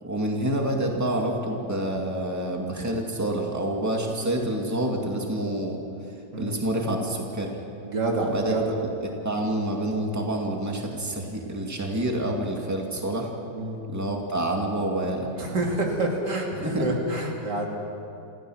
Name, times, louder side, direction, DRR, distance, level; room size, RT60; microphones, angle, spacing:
voice 1, 0.0-5.8 6.4-7.5 8.3-8.5 9.2-13.3 13.9-15.3 16.5-16.9, right 1 dB, 10° right, 0 dB, 2.3 m, -27 dB
voice 2, 7.8-8.7 13.5-13.8 15.4-17.7, right 2 dB, 85° right, -1 dB, 3.3 m, -27 dB
27.0 x 16.0 x 6.5 m, 2.7 s
omnidirectional pair, 1.8 m